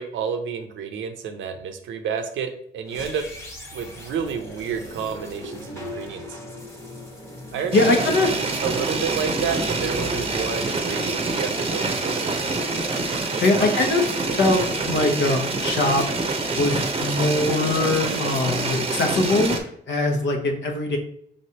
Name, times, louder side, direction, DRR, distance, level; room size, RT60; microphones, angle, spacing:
voice 1, 0.0-3.3 3.7-6.4 7.5-8.0 8.6-12.5 13.3-13.7 14.3-14.4, right 6 dB, 75° right, 6 dB, 0.7 m, -30 dB
sound 1, 2.8-12.1, left 1 dB, 15° left, 1.2 m, -39 dB
voice 2, 7.7-8.3 13.4-14.0 14.4-16.0 16.6-19.6 19.9-21.0, left 2 dB, 65° left, 3 dB, 1.0 m, -22 dB
sound 2, 7.7-19.6, right 3 dB, 30° right, 0.7 m, -26 dB
5.0 x 3.2 x 2.8 m, 0.69 s
cardioid pair, 90°, 20 cm